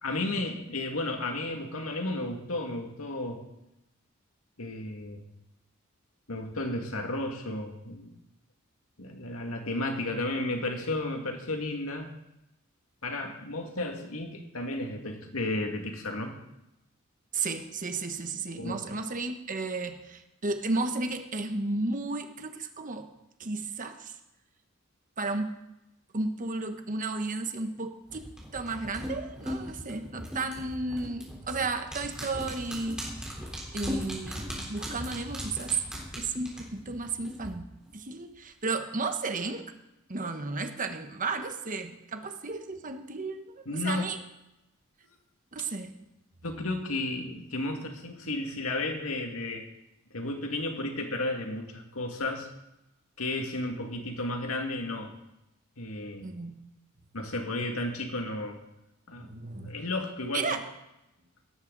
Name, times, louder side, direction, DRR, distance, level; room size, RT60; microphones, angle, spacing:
voice 1, 0.0-3.4 4.6-5.2 6.3-8.1 9.0-12.1 13.0-16.4 18.6-18.8 43.7-44.1 46.4-49.7 50.1-52.5 53.2-55.1 55.8-56.3 57.1-58.6 59.1-59.3 59.7-60.5, left 2 dB, 85° left, 3 dB, 2.2 m, -33 dB
voice 2, 17.3-23.1 23.4-24.2 25.2-25.6 26.1-33.1 33.7-35.8 36.2-39.7 40.1-44.2 45.5-46.0 56.2-56.6 59.2-59.7 60.3-60.6, right 3 dB, 40° right, 7 dB, 1.2 m, -33 dB
sound 1, 28.1-37.5 37.8-37.9, equal, 5° right, 4.1 m, -38 dB
17.0 x 13.5 x 4.1 m, 0.91 s
head